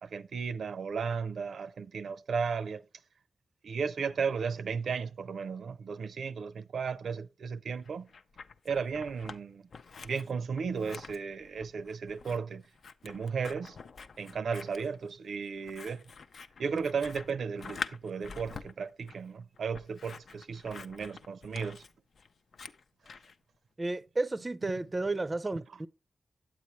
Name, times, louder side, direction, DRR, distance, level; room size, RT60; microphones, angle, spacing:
voice 1, 0.0-2.8 3.6-8.1 8.6-9.6 10.0-12.6 13.0-13.8 14.2-16.0 16.6-21.8, right 5 dB, 90° right, 0.5 m, -35 dB
Scissors, 7.8-9.4 9.7-23.4, left 5 dB, 70° left, 0.5 m, -46 dB
voice 2, 23.8-25.9, right 2 dB, 25° right, 0.4 m, -32 dB
8.9 x 8.4 x 3.1 m
wide cardioid pair, 125°, 0 cm